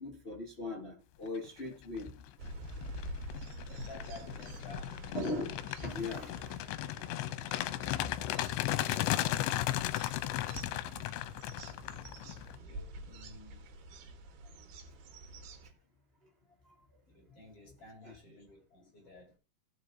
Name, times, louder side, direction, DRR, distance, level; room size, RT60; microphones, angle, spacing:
voice 1, 0.0-2.1 5.1-6.9 7.4-8.4 18.0-18.2, left 2 dB, 50° left, 0.7 m, -40 dB
sound 1, 1.7-2.0 2.5-12.6, left 15 dB, 85° left, 2.9 m, -36 dB
sound 2, 2.4-15.7, right 1 dB, 90° right, 4.2 m, -47 dB
voice 2, 3.7-5.0 8.6-11.1 12.5-13.7 17.1-19.4, left 2 dB, 35° left, 4.7 m, -53 dB
19.0 x 7.0 x 2.8 m
omnidirectional pair, 5.1 m